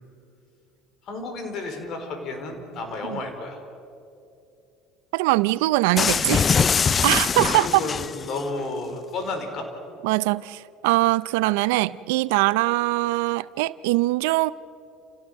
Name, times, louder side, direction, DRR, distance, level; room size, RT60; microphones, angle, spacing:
voice 1, 1.0-3.6 7.4-9.7, left 3 dB, 55° left, 4.2 m, -32 dB
voice 2, 5.1-6.5 7.0-7.7 10.0-14.5, right 20 dB, 80° right, 0.5 m, -22 dB
sound 1, 6.0-8.4, left 6 dB, 35° left, 0.4 m, -22 dB
29.5 x 16.5 x 6.5 m
supercardioid pair, 90°, 0 cm